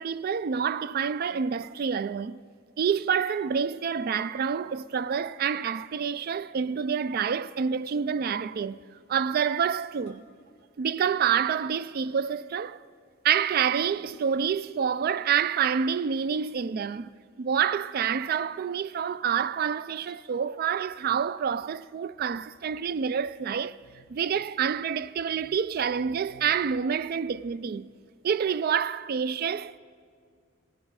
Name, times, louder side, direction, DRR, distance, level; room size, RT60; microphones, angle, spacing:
voice 1, 0.0-2.4 2.8-8.8 9.1-10.2 10.8-12.8 13.2-17.1 17.4-23.8 24.1-27.9 28.2-29.8, right 7 dB, 45° right, 0.3 m, -27 dB
sound 1, 1.6-2.1 4.2-4.3 4.7-5.7 7.2-7.6 10.0-10.6 11.6-12.3 13.1-13.2 13.5-13.6 14.0-14.7 15.2-15.3, left 2 dB, 65° right, 2.7 m, -58 dB
18.5 x 16.0 x 4.7 m
head